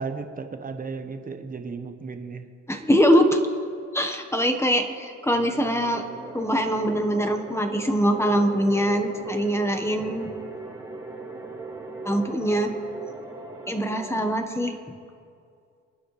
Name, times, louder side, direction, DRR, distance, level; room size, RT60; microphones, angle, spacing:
voice 1, 0.0-2.5, right 4 dB, 30° right, 7 dB, 1.2 m, -34 dB
voice 2, 2.7-3.4 3.9-6.0 6.3-10.3 12.0-12.7 13.7-14.7, equal, 10° left, 6 dB, 1.3 m, -23 dB
sound 1, 5.3-14.3, right 3 dB, 10° right, 1.9 m, -39 dB
28.0 x 9.6 x 3.3 m, 2.3 s
cardioid pair, 90°, 30 cm